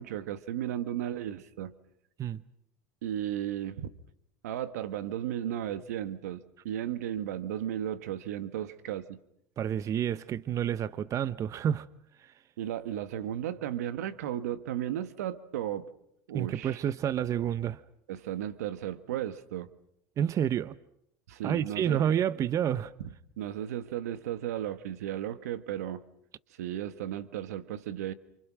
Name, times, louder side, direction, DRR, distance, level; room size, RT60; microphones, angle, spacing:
voice 1, 0.0-1.7 3.0-3.9 4.4-9.2 12.6-15.9 16.3-16.8 18.1-19.7 21.3-22.0 23.4-26.0 26.6-28.1, right 11 dB, 85° right, 1.5 m, -35 dB
voice 2, 9.6-11.9 16.3-17.8 20.2-20.7 21.4-22.9, right 9 dB, 40° right, 1.0 m, -29 dB
29.0 x 27.0 x 6.3 m
supercardioid pair, 100°, 8 cm